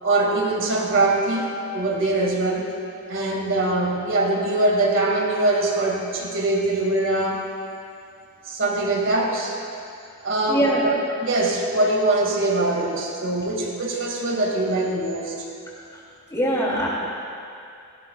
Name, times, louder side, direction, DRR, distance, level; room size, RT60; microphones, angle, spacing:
voice 1, 0.0-2.7 3.1-7.4 8.5-9.5 10.2-10.9 11.2-15.3, right 2 dB, 60° right, -1 dB, 2.2 m, -22 dB
voice 2, 10.5-10.9 16.3-16.9, equal, 15° left, -6 dB, 2.9 m, -22 dB
17.5 x 17.5 x 2.4 m, 2.4 s
head